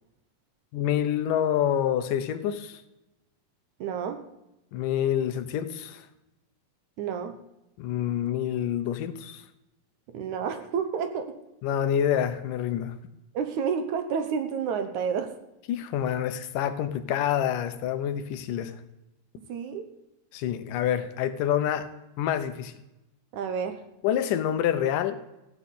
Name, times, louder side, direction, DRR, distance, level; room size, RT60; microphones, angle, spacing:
voice 1, 0.7-2.8 4.7-6.1 7.8-9.4 11.6-13.0 15.7-18.8 20.3-21.9 22.2-22.8 24.0-25.2, left 10 dB, 75° left, 11 dB, 2.4 m, -27 dB
voice 2, 3.8-4.2 7.0-7.4 10.1-11.3 13.3-15.3 19.5-19.9 23.3-23.8, right 6 dB, 65° right, 7 dB, 2.3 m, -30 dB
15.5 x 7.8 x 8.4 m, 0.90 s
omnidirectional pair, 4.0 m